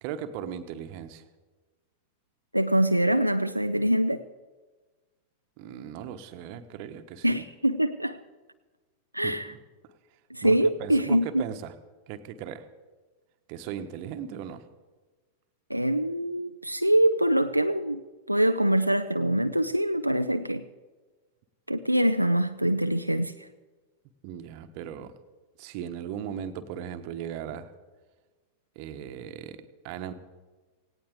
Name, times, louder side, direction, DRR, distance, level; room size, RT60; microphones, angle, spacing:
voice 1, 0.0-1.2 5.6-7.4 9.2-9.6 10.4-11.7 12.1-12.7 13.5-14.6 24.2-25.1 25.6-27.7 28.7-30.1, right 9 dB, 45° right, 10 dB, 1.2 m, -38 dB
voice 2, 2.5-4.2 7.2-8.2 9.1-9.5 10.3-11.4 15.7-18.0 18.3-20.6 21.7-23.3, right 1 dB, 90° right, 8 dB, 0.4 m, -24 dB
17.5 x 17.5 x 3.8 m, 1.3 s
figure-of-eight pair, 90°, 0 cm